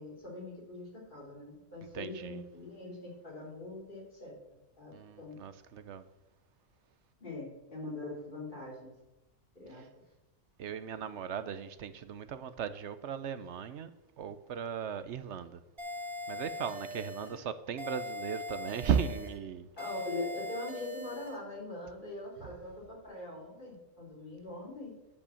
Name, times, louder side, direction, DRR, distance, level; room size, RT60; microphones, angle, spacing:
voice 1, 0.0-4.3 4.8-5.4 7.2-8.9 9.5-10.0 17.2-17.4 19.8-25.0, left 2 dB, 35° left, 3.4 m, -42 dB
voice 2, 1.9-2.4 4.9-6.0 10.6-13.9 14.2-15.6 16.3-19.7, right 7 dB, 65° right, 0.9 m, -36 dB
sound 1, 15.8-17.4 17.8-19.4 19.8-21.4, left 2 dB, 45° right, 2.8 m, -41 dB
10.5 x 5.6 x 6.9 m
omnidirectional pair, 1.4 m